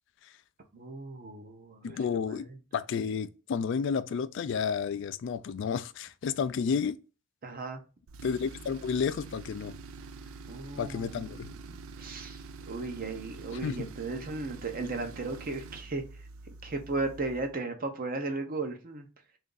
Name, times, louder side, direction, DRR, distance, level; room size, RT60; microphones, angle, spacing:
voice 1, 0.7-2.0 2.3-2.6 7.4-7.8 10.5-11.3 11.6-16.0 16.5-19.1, right 3 dB, 45° right, 0.7 m, -36 dB
voice 2, 1.8-7.0 8.2-9.7 10.8-11.5 13.6-13.9, left 6 dB, 60° left, 0.3 m, -31 dB
Tools, 8.1-17.5, right 4 dB, 75° right, 0.4 m, -46 dB
3.4 x 2.6 x 3.8 m
head